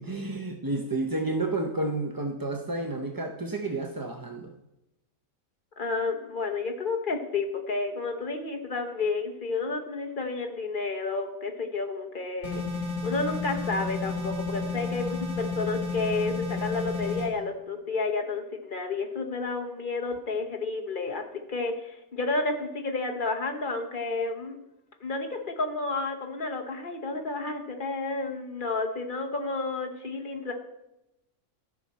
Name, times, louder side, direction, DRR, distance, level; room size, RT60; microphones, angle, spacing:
voice 1, 0.0-4.5, right 2 dB, 35° right, 3 dB, 0.3 m, -31 dB
voice 2, 5.8-12.6 13.0-21.2 21.5-24.6 25.0-30.5, left 3 dB, 40° left, 3 dB, 0.9 m, -31 dB
sound 1, 12.4-17.3, left 3 dB, 75° left, 3.3 m, -32 dB
14.0 x 5.7 x 4.1 m, 0.90 s
omnidirectional pair, 1.4 m